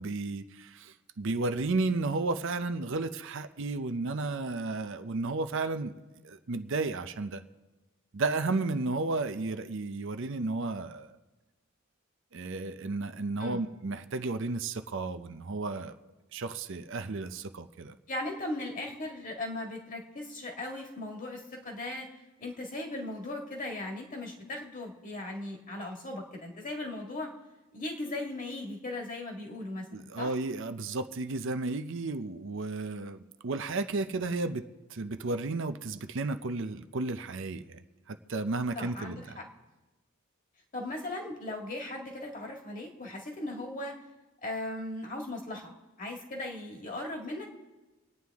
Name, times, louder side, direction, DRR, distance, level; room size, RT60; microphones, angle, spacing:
voice 1, 0.0-7.4 8.1-11.2 12.3-16.0 16.3-18.0 29.9-34.6 34.9-37.8 38.1-39.4, right 3 dB, 60° right, 9 dB, 0.6 m, -33 dB
voice 2, 18.1-22.1 22.4-27.3 27.7-30.3 38.7-39.4 40.7-44.0 44.4-45.7 46.0-47.5, left 2 dB, 40° left, 1 dB, 1.9 m, -38 dB
26.0 x 9.4 x 3.5 m, 1.1 s
head